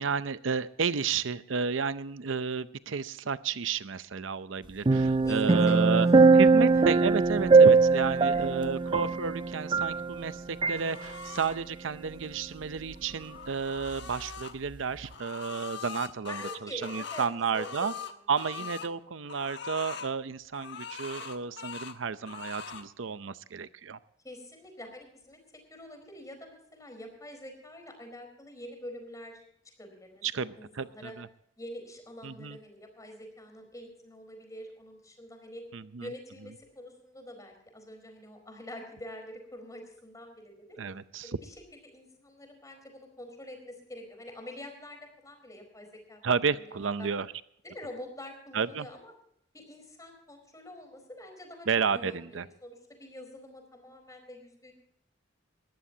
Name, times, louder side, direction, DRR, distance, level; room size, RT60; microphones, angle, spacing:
voice 1, 0.0-6.1 6.3-17.9 18.3-24.0 30.2-31.3 32.2-32.6 35.7-36.1 40.8-41.3 46.2-47.3 48.5-48.9 51.7-52.4, right 5 dB, 80° right, 14 dB, 0.6 m, -32 dB
sound 1, 4.9-10.3 10.6-10.8, right 4 dB, 25° right, 0.4 m, -21 dB
voice 2, 5.0-6.4 6.7-6.8 8.2-8.5 16.3-17.3 17.5-18.1 18.6-19.0 22.8-23.2 24.2-25.4 25.7-29.4 29.8-31.1 31.6-35.7 36.0-40.8 41.2-41.5 41.9-47.1 47.6-49.1 49.5-51.7 51.9-54.7, left 1 dB, 20° left, 4 dB, 4.5 m, -46 dB
sound 2, 10.8-11.6 13.0-14.5 15.0-18.9 19.3-20.1 20.5-22.0 22.3-22.9, left 6 dB, 60° left, 1.2 m, -42 dB
20.5 x 15.0 x 2.8 m, 0.70 s
head